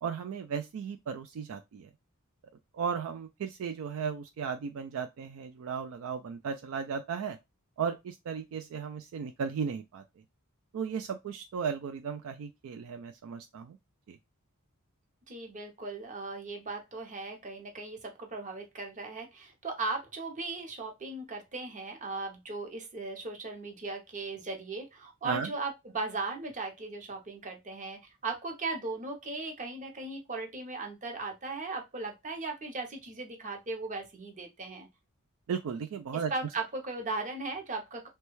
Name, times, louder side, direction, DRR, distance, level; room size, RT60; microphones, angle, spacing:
voice 1, 0.0-1.9 2.7-7.4 7.8-10.0 10.7-13.8 14.1-14.2 25.2-25.5 35.5-36.3, right 6 dB, 65° right, 0.3 m, -35 dB
voice 2, 15.3-34.9 36.3-38.1, right 3 dB, 35° right, 0.7 m, -37 dB
3.1 x 2.3 x 3.0 m
head